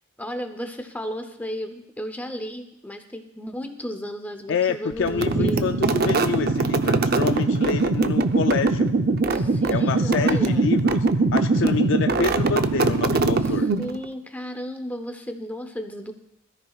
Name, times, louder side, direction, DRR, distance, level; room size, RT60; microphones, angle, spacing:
voice 1, 0.2-6.0 9.3-10.7 13.4-16.1, equal, 10° left, 6 dB, 0.7 m, -34 dB
voice 2, 4.5-8.9 9.7-11.0 11.3-13.7, left 6 dB, 55° left, 8 dB, 0.4 m, -27 dB
sound 1, 5.1-14.0, right 3 dB, 45° right, 0.6 m, -21 dB
21.0 x 13.5 x 2.4 m, 0.83 s
head